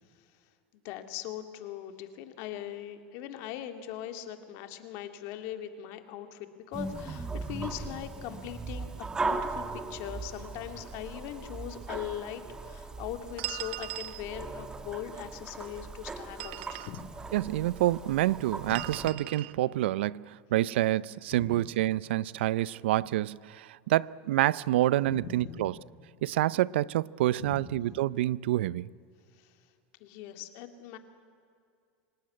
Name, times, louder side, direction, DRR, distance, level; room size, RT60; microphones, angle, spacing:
voice 1, 0.8-17.1 18.6-19.1 21.3-21.6 25.1-25.7 27.4-28.0 29.4-29.5 30.0-31.0, left 10 dB, 55° left, 2.3 m, -41 dB
sound 1, 6.7-19.1, right 3 dB, 10° right, 1.4 m, -39 dB
sound 2, 13.4-14.2 16.2-17.0 18.7-19.5, right 17 dB, 70° right, 0.9 m, -39 dB
voice 2, 17.3-25.7 26.2-28.9, right 15 dB, 90° right, 0.5 m, -27 dB
26.0 x 18.5 x 9.7 m
supercardioid pair, 150°, 6 cm